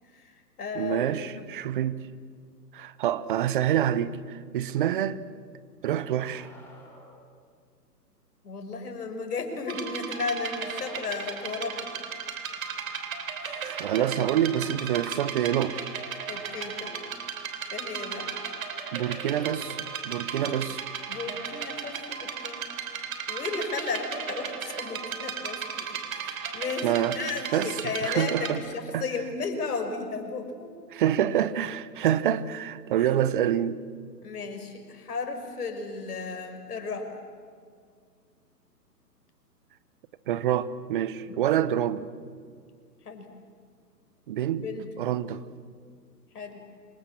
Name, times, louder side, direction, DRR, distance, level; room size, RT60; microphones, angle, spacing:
voice 1, 0.1-1.4 8.4-11.9 13.4-14.1 16.3-17.1 17.7-18.4 20.4-20.6 21.1-22.6 23.3-30.8 33.0-33.1 34.2-37.1 41.3-41.4 43.0-43.3 44.6-44.9 46.3-46.6, left 4 dB, 65° left, 5.7 m, -35 dB
voice 2, 0.8-2.0 2.7-5.2 5.8-6.5 13.6-15.8 18.9-20.8 26.8-27.2 27.5-27.7 28.0-28.6 28.9-29.0 30.9-33.8 40.3-42.1 44.3-44.7 45.0-45.4, right 10 dB, 30° right, 1.0 m, -27 dB
Bark, 6.1-7.2 10.8-11.8 13.4-14.9 16.6-16.7 18.6-18.7 19.8-19.9, left 1 dB, 5° left, 4.5 m, -52 dB
sound 1, 9.7-28.5, right 7 dB, 55° right, 3.5 m, -36 dB
28.5 x 26.0 x 7.3 m
figure-of-eight pair, 135°, 50 cm